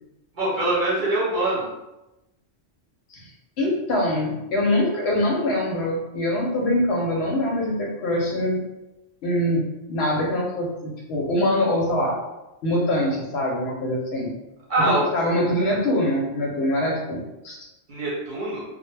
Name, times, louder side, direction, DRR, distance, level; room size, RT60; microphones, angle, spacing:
voice 1, 0.3-1.7 14.7-15.1 17.9-18.6, right 2 dB, 45° right, -7 dB, 0.9 m, -23 dB
voice 2, 3.6-8.6 9.2-9.6 9.9-12.2 12.6-14.4 14.8-17.7, left 1 dB, 65° left, -2 dB, 0.8 m, -24 dB
2.1 x 2.1 x 3.1 m, 0.96 s
omnidirectional pair, 1.3 m